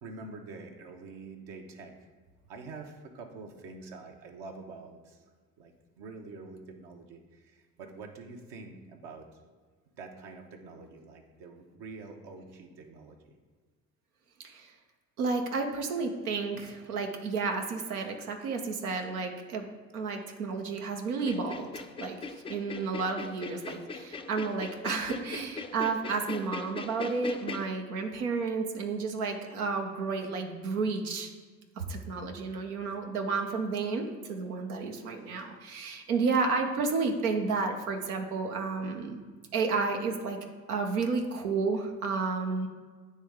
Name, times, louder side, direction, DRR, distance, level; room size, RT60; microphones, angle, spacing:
voice 1, 0.0-1.9 2.5-5.2 5.6-9.3 9.9-13.3 20.8-21.1 29.9-30.0 34.9-35.6, right 3 dB, 65° right, 3 dB, 1.0 m, -46 dB
voice 2, 15.2-19.6 19.9-22.2 22.5-31.3 31.8-39.2 39.5-40.4 40.7-42.7, right 4 dB, 90° right, 3 dB, 0.6 m, -31 dB
sound 1, 21.2-27.7, left 4 dB, 15° left, 0.3 m, -40 dB
9.5 x 3.2 x 3.5 m, 1.5 s
hypercardioid pair, 50°, 43 cm